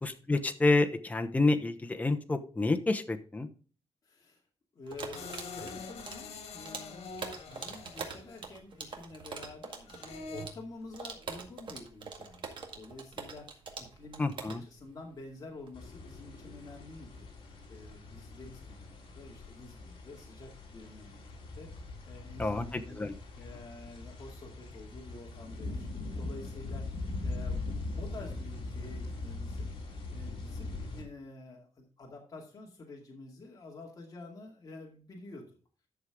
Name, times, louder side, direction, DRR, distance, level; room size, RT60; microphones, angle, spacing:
voice 1, 0.0-3.5 14.2-14.6 22.4-23.1, left 2 dB, 15° left, 5 dB, 1.0 m, -29 dB
voice 2, 4.0-4.4 4.7-17.3 17.7-21.2 21.6-23.0 23.4-27.7 28.0-29.7 30.1-35.6, left 2 dB, 35° left, -1 dB, 2.3 m, -49 dB
sound 1, 4.9-15.7, right 5 dB, 50° right, 2.0 m, -44 dB
sound 2, 5.1-8.5 9.9-10.5, left 4 dB, 75° left, 2.3 m, -44 dB
sound 3, 15.7-31.0, left 2 dB, 55° left, 3.5 m, -41 dB
11.5 x 6.5 x 3.7 m, 0.39 s
wide cardioid pair, 155°, 11 cm